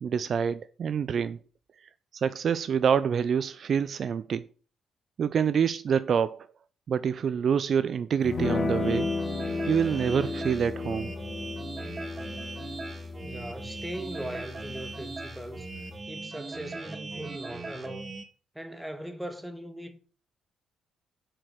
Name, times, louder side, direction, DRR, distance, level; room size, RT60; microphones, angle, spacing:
voice 1, 0.0-1.4 2.1-4.5 5.2-6.5 6.9-9.1 9.7-11.1, right 7 dB, 55° right, 0.5 m, -26 dB
sound 1, 8.2-16.0, left 4 dB, 40° left, 1.8 m, -34 dB
sound 2, 8.8-18.2, right 3 dB, 35° right, 1.5 m, -40 dB
voice 2, 13.2-18.1 18.6-20.0, right 1 dB, 5° right, 1.7 m, -39 dB
7.8 x 6.1 x 6.6 m
cardioid pair, 90°, 0 cm